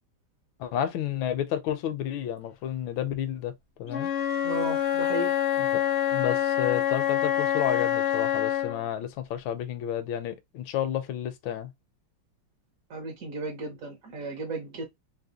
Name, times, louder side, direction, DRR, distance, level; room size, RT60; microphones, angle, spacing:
voice 1, 0.6-4.1 5.6-11.7, left 10 dB, 80° left, 1.3 m, -31 dB
Wind instrument woodwind instrument, 3.9-8.8, left 10 dB, 55° left, 0.7 m, -26 dB
voice 2, 4.4-5.3 12.9-14.8, right 2 dB, 55° right, 1.0 m, -34 dB
3.3 x 2.9 x 2.7 m
omnidirectional pair, 2.2 m